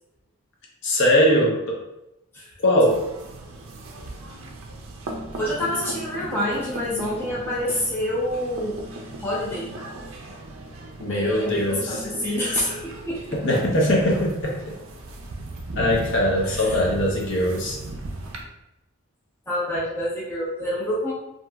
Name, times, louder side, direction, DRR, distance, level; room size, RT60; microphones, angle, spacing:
voice 1, 0.8-1.8 2.6-3.0 11.0-12.0 13.3-14.6 15.7-17.8, equal, 55° left, -2 dB, 0.6 m, -21 dB
sound 1, 2.9-18.4, right 2 dB, 60° right, 0.4 m, -37 dB
voice 2, 5.4-8.8 9.2-9.7 11.1-13.4 16.4-16.8 19.5-21.1, left 1 dB, 10° left, -7 dB, 0.5 m, -27 dB
2.8 x 2.6 x 2.2 m, 0.89 s
head